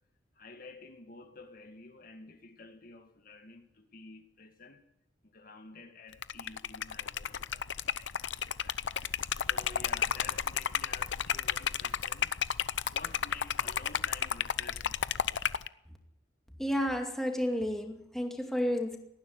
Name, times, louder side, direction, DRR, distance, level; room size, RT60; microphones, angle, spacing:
voice 1, 0.4-4.8 5.3-9.2 9.5-12.3 12.9-15.0, left 3 dB, 50° left, 2.2 m, -51 dB
Liquid, 6.1-15.7, left 8 dB, 80° left, 0.7 m, -32 dB
voice 2, 16.6-19.0, equal, ahead, 2.4 m, -31 dB
19.0 x 14.5 x 9.8 m
head